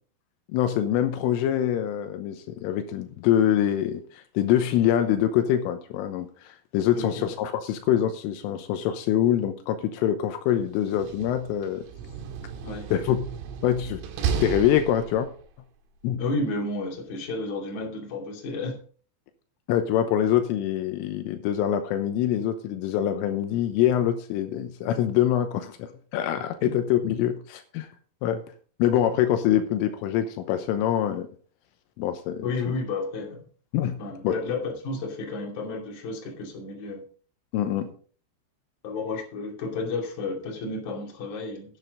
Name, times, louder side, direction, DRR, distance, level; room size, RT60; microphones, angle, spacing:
voice 1, 0.5-11.9 12.9-13.2 13.6-14.0 14.4-15.3 16.0-16.2 19.7-27.9 28.2-28.4 28.8-31.3 32.0-32.7 33.7-34.0 34.2-34.3 37.5-37.9, left 11 dB, 85° left, 7 dB, 3.4 m, -25 dB
Slam, 10.8-15.5, right 6 dB, 85° right, 4.1 m, -33 dB
voice 2, 16.2-18.8 26.4-26.7 32.4-33.4 34.0-37.0 38.8-41.8, left 3 dB, 45° left, -1 dB, 3.5 m, -32 dB
11.0 x 10.0 x 3.9 m, 0.42 s
omnidirectional pair, 5.8 m